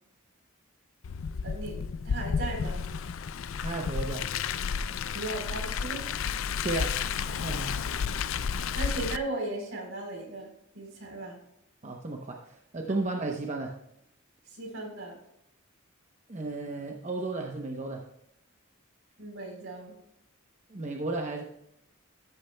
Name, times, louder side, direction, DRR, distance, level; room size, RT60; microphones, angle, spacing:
Car, 1.0-9.2, left 6 dB, 70° left, 0.4 m, -32 dB
voice 1, 1.4-2.8 5.1-6.1 8.7-10.5 10.7-11.4 14.5-15.1 19.2-19.9, right 2 dB, 70° right, 0 dB, 3.8 m, -37 dB
voice 2, 3.6-4.3 6.6-7.0 7.4-7.7 11.8-13.7 16.3-18.0 20.7-21.4, right 2 dB, 35° right, 1 dB, 0.8 m, -33 dB
13.0 x 8.7 x 2.2 m, 0.80 s
head